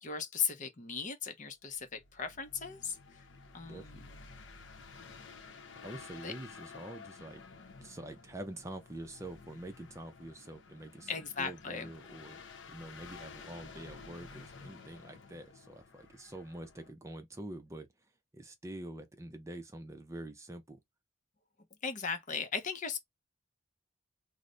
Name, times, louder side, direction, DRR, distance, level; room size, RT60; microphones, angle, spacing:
voice 1, 0.0-3.3 3.5-4.3 6.2-6.3 11.1-11.9 21.8-23.0, left 6 dB, 40° left, 0.7 m, -37 dB
sound 1, 1.7-16.9, left 4 dB, 80° left, 0.7 m, -52 dB
voice 2, 3.7-4.1 5.8-7.4 7.8-11.1 11.4-12.4 12.7-17.9 18.3-20.8, right 1 dB, 15° right, 0.5 m, -46 dB
3.2 x 2.1 x 3.7 m
head